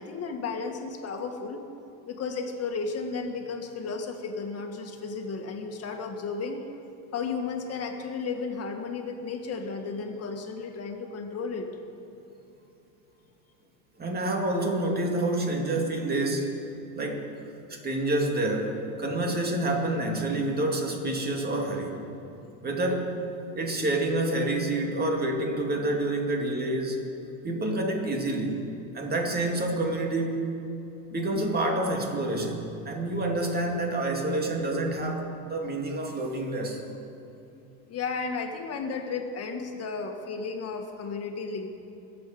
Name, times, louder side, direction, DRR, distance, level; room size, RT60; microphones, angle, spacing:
voice 1, 0.0-1.6 2.1-6.6 7.1-11.7 37.9-41.7, left 4 dB, 40° left, 3 dB, 1.8 m, -33 dB
voice 2, 14.0-16.6 17.0-17.3 17.8-22.0 22.6-23.2 23.6-27.0 27.4-28.6 28.9-30.5 31.1-36.8, right 1 dB, 25° right, 1 dB, 2.3 m, -28 dB
22.5 x 7.9 x 5.1 m, 2.9 s
supercardioid pair, 120°, 38 cm